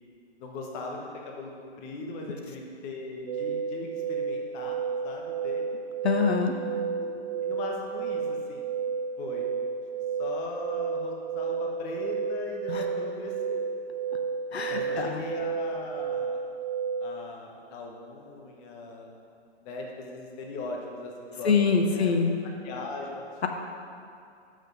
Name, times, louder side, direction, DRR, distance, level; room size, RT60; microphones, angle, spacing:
voice 1, 0.4-5.7 7.0-8.7 9.2-9.5 10.2-13.6 14.7-16.4 17.0-19.1 19.6-21.6 21.9-22.2 22.6-23.3, left 3 dB, 20° left, 0 dB, 1.0 m, -39 dB
sound 1, 3.3-17.1, right 6 dB, 35° right, 0.4 m, -32 dB
voice 2, 6.0-6.5 12.7-12.8 14.5-15.2 21.4-22.3, left 5 dB, 65° left, 4 dB, 0.9 m, -24 dB
7.9 x 6.3 x 5.3 m, 2.5 s
figure-of-eight pair, 130°, 34 cm